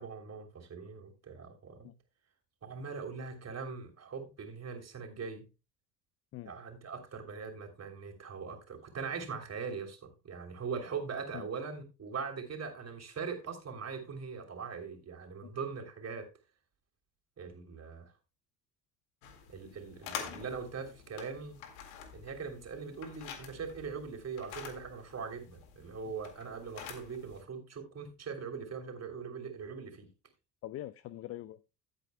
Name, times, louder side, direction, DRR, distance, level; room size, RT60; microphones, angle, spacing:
voice 1, 0.0-1.9 2.6-5.4 6.4-16.3 17.4-18.1 19.5-21.6 22.1-30.1, right 5 dB, 30° right, 3.2 m, -41 dB
sound 1, 19.2-27.4, left 8 dB, 70° left, 2.1 m, -47 dB
voice 2, 30.6-31.6, left 14 dB, 30° left, 0.4 m, -43 dB
15.5 x 8.8 x 2.2 m
hypercardioid pair, 65°, 48 cm